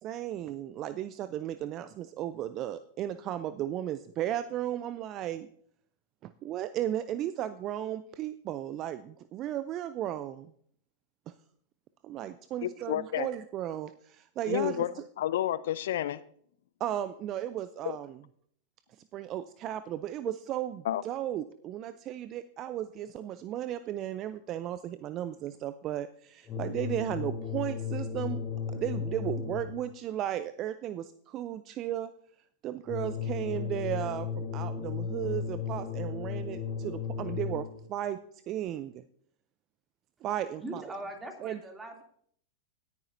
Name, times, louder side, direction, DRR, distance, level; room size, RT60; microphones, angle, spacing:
voice 1, 0.0-5.5 6.2-10.5 11.3-11.4 12.0-15.0 16.8-18.2 19.1-28.4 28.7-32.1 32.6-38.2 38.5-39.0 40.2-40.8 41.4-41.6, right 12 dB, 35° right, 14 dB, 0.5 m, -35 dB
voice 2, 12.6-13.3 14.5-14.9 15.2-16.2 20.9-21.0, left 12 dB, 65° left, 17 dB, 0.4 m, -30 dB
sound 1, 26.5-29.9 32.9-37.9, left 6 dB, 25° left, 3.2 m, -35 dB
voice 3, 40.6-42.0, right 1 dB, 15° right, 3 dB, 2.7 m, -41 dB
17.5 x 9.8 x 2.7 m, 0.63 s
figure-of-eight pair, 95°, 0 cm